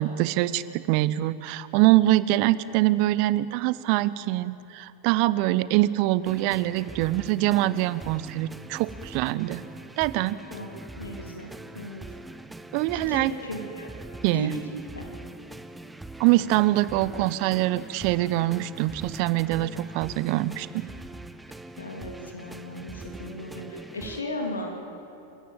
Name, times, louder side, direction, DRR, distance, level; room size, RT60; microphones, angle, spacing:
voice 1, 0.0-9.6 10.0-10.4 12.7-13.3 14.2-14.5 16.2-20.9, right 16 dB, 45° right, 17 dB, 0.6 m, -24 dB
sound 1, 6.2-24.2, right 2 dB, 5° right, 0.7 m, -42 dB
voice 2, 10.5-12.0 12.9-13.9 14.3-14.6 14.9-15.1 21.8-24.7, left 1 dB, 75° left, 2 dB, 3.2 m, -36 dB
28.5 x 14.5 x 7.4 m, 2.9 s
figure-of-eight pair, 90°, 0 cm